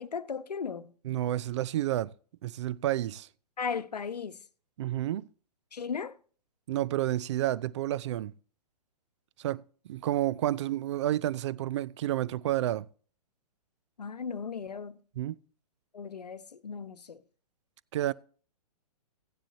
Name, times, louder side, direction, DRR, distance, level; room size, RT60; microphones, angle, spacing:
voice 1, 0.0-0.9 3.6-4.4 5.7-6.1 14.0-15.0 15.9-17.2, left 6 dB, 80° left, 0.9 m, -36 dB
voice 2, 1.0-2.1 2.4-3.3 4.8-5.3 6.7-8.3 9.4-9.6 9.9-12.9 15.2-15.4 17.9-18.1, right 13 dB, 45° right, 0.5 m, -30 dB
16.0 x 10.0 x 2.7 m
figure-of-eight pair, 125°, 20 cm